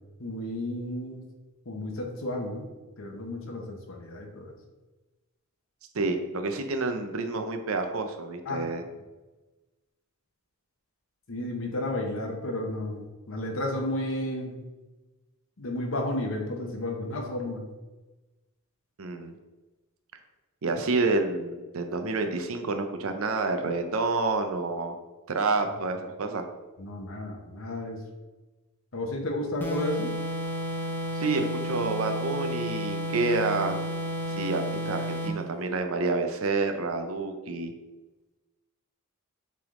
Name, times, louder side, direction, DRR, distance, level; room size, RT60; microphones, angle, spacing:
voice 1, 0.2-1.2 1.6-2.7 3.0-4.6 8.4-8.6 11.3-14.6 15.6-17.6 26.8-28.0 28.9-30.2, left 1 dB, 65° left, 2 dB, 0.9 m, -32 dB
voice 2, 5.9-8.8 19.0-19.3 20.6-25.0 25.3-26.5 31.2-33.8 34.3-37.7, right 3 dB, 65° right, 6 dB, 0.7 m, -28 dB
sound 1, 29.6-35.4, equal, 10° left, 0.8 m, -32 dB
7.6 x 3.6 x 3.7 m, 1.1 s
head